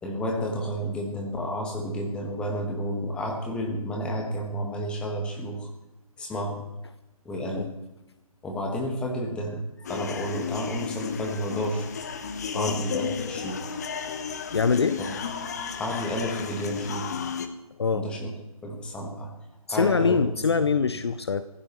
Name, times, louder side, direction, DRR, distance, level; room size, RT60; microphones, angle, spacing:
voice 1, 0.0-5.7 6.2-6.6 7.2-7.7 8.4-9.6 9.9-11.9 12.5-13.6 15.0-15.1 15.8-17.1 17.9-18.3 18.6-19.3 19.7-20.2, equal, 5° left, 1 dB, 1.5 m, -31 dB
sound 1, 9.8-17.5, left 6 dB, 25° left, 0.9 m, -33 dB
voice 2, 14.5-15.0 17.8-18.1 19.7-21.4, left 5 dB, 45° left, 13 dB, 0.6 m, -24 dB
25.0 x 15.0 x 3.1 m, 0.99 s
figure-of-eight pair, 150°, 19 cm